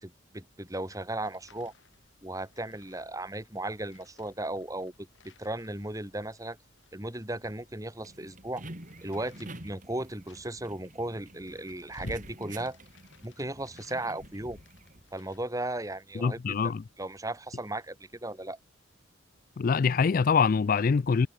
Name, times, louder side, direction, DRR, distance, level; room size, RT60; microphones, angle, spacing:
voice 1, 0.0-1.7 2.2-4.9 5.2-6.6 6.9-8.6 9.0-12.8 13.2-14.6 15.1-16.7 17.0-18.0 18.2-18.6, right 1 dB, 15° right, 3.0 m, -36 dB
sound 1, 0.7-15.4, left 1 dB, 65° left, 2.9 m, -53 dB
sound 2, 7.4-15.0, right 1 dB, 40° right, 4.9 m, -49 dB
voice 2, 16.2-16.8 19.6-21.3, left 5 dB, 45° left, 0.4 m, -24 dB
head